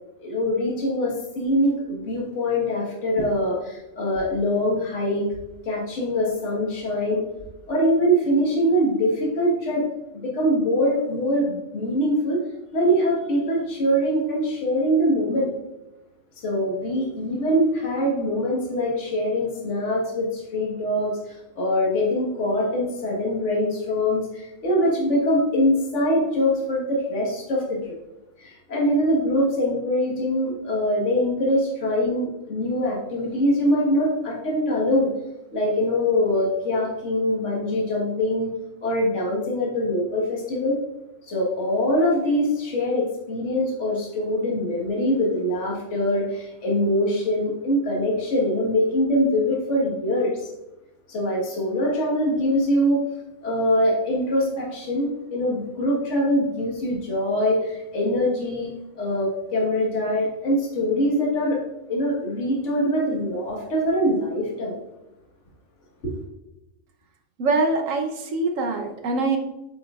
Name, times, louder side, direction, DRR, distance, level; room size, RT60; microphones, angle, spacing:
voice 1, 0.2-5.3 5.6-7.2 7.7-9.9 10.2-12.4 12.7-15.5 16.4-28.0 28.4-35.1 35.5-38.5 38.8-40.8 41.2-50.5 51.1-53.0 53.4-58.7 58.9-61.6 61.9-64.8 66.0-66.2, equal, 65° left, -2 dB, 1.8 m, -23 dB
voice 2, 67.4-69.4, right 3 dB, 75° right, 4 dB, 1.3 m, -23 dB
8.1 x 6.2 x 2.4 m, 0.95 s
omnidirectional pair, 1.4 m